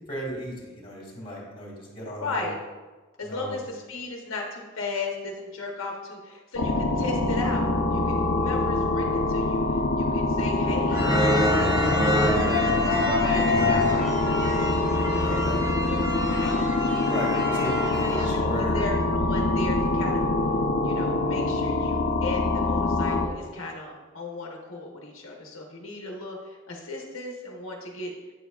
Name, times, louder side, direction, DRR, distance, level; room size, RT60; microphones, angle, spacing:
voice 1, 0.1-2.5 3.2-3.6 15.2-15.6 17.1-18.8, equal, 30° left, -4 dB, 2.1 m, -35 dB
voice 2, 2.2-2.5 3.2-14.4 16.3-16.6 18.1-20.4 20.8-28.1, left 3 dB, 90° left, 0 dB, 1.0 m, -36 dB
sound 1, 6.6-23.3, left 2 dB, 65° left, 0.6 m, -25 dB
sound 2, 10.9-18.2, left 1 dB, 20° right, 1.1 m, -27 dB
8.4 x 6.6 x 2.4 m, 1.3 s
head